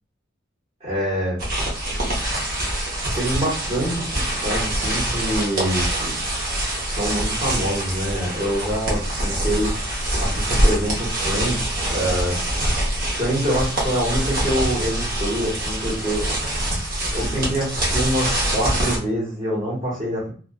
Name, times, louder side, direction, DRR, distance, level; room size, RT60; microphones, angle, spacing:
voice 1, 0.8-1.4 3.1-6.2 6.8-9.7 10.1-12.4 13.0-16.3 17.1-20.3, equal, 30° right, -9 dB, 1.1 m, -25 dB
sound 1, 1.4-19.0, right 1 dB, 50° right, 1.0 m, -24 dB
2.4 x 2.3 x 2.3 m, 0.41 s
head